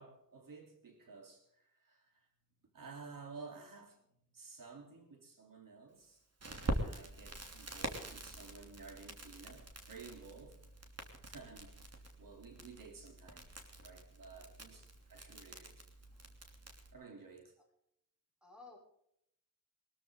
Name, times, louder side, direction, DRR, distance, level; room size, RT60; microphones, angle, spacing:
voice 1, 0.0-2.3 2.7-4.0 4.3-6.2 6.6-10.6 11.2-11.8 12.2-13.5 13.8-15.8 16.9-17.5, right 4 dB, 75° right, 3.7 m, -53 dB
Crackle, 6.4-16.9, right 2 dB, 50° right, 3.1 m, -45 dB
voice 2, 15.1-15.6 16.1-16.3 18.4-18.8, left 3 dB, 5° right, 6.9 m, -59 dB
22.5 x 14.0 x 3.9 m
wide cardioid pair, 165°, 33 cm